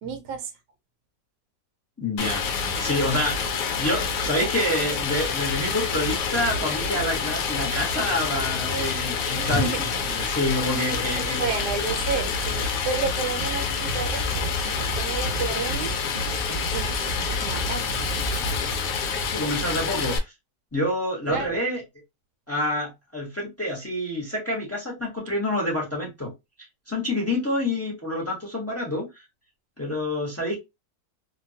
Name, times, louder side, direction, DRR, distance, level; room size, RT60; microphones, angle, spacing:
voice 1, 0.0-0.5 9.4-9.8 11.4-16.0 16.7-17.1 17.4-17.9 21.3-21.6, right 5 dB, 70° right, 1.1 m, -30 dB
voice 2, 2.0-2.5 2.7-3.5 3.7-9.7 10.1-11.4 19.3-20.1 20.7-21.8 22.5-26.3 26.9-29.1 29.8-30.5, left 1 dB, 10° left, 0.7 m, -27 dB
Stream, 2.2-20.2, left 5 dB, 70° left, 0.8 m, -27 dB
sound 1, 13.0-18.6, right 1 dB, 55° right, 0.5 m, -34 dB
2.8 x 2.2 x 2.7 m
omnidirectional pair, 1.9 m